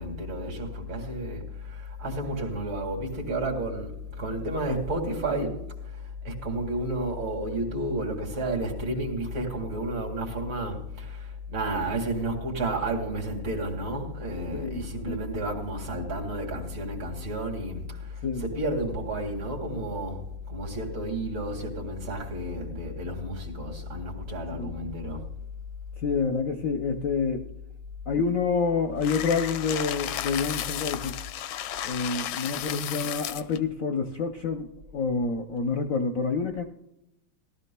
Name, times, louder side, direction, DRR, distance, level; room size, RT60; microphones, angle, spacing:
voice 1, 0.0-25.3, right 1 dB, 65° right, 3.0 m, -31 dB
voice 2, 14.5-15.2 18.2-18.4 24.5-24.7 26.0-27.5 28.1-31.2 31.8-36.6, left 5 dB, 60° left, 0.9 m, -28 dB
sound 1, 29.0-33.6, left 11 dB, 80° left, 1.4 m, -33 dB
18.0 x 13.0 x 2.2 m
omnidirectional pair, 2.2 m